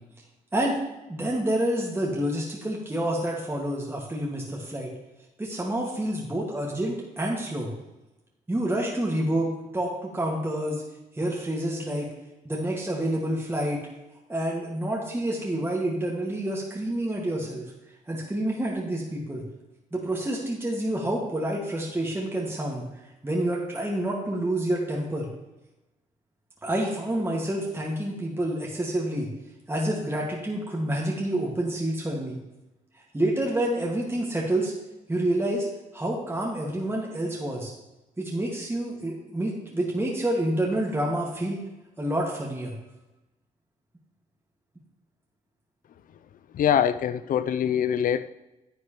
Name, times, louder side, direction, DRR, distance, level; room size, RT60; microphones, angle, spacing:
voice 1, 1.1-4.9 5.4-7.7 8.5-10.8 11.1-12.1 12.5-13.9 14.3-17.6 18.1-19.4 19.9-22.9 23.2-25.3 26.6-29.3 29.7-32.4 33.1-34.7 35.1-35.7 35.9-37.7 38.2-41.6 42.0-42.7, right 1 dB, 15° right, -3 dB, 1.8 m, -28 dB
voice 2, 46.5-48.3, left 9 dB, 70° left, 13 dB, 0.4 m, -24 dB
9.8 x 7.8 x 3.0 m, 1.0 s
cardioid pair, 80°, 15 cm